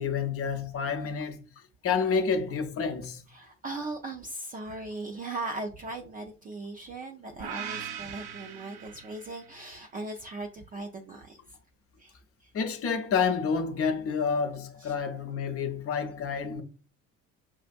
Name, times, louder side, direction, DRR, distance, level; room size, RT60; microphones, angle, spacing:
voice 1, 0.0-3.2 12.5-16.6, left 6 dB, 30° left, 0.6 m, -29 dB
voice 2, 3.3-11.6 12.0-12.5 14.8-14.9, right 2 dB, 20° right, 0.3 m, -39 dB
sound 1, 7.4-9.6, right 8 dB, 50° right, 0.7 m, -40 dB
5.9 x 2.5 x 2.2 m
figure-of-eight pair, 55°, 45 cm